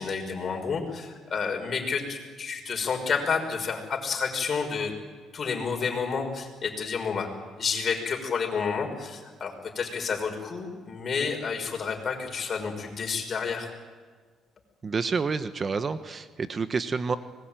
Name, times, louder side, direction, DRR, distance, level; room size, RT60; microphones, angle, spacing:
voice 1, 0.0-4.9 5.3-7.3 7.6-13.7, left 5 dB, 45° left, 4 dB, 5.9 m, -30 dB
voice 2, 14.8-17.2, right 4 dB, 35° right, 11 dB, 1.3 m, -28 dB
25.0 x 21.0 x 9.2 m, 1.5 s
cardioid pair, 95°, 0 cm